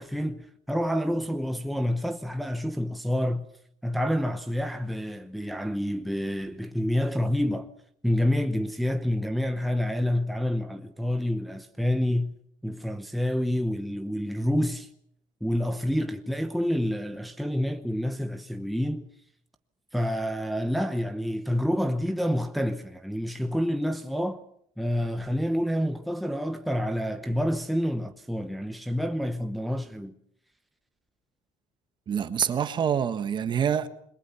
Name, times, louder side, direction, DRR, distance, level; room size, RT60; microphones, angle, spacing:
voice 1, 0.0-3.5 3.8-7.7 8.0-12.4 12.6-14.9 15.4-19.1 19.9-24.4 24.8-30.1, equal, ahead, 0.9 m, -28 dB
voice 2, 32.1-33.9, right 8 dB, 35° right, 1.5 m, -26 dB
28.5 x 22.5 x 5.8 m
cardioid pair, 155°, 13 cm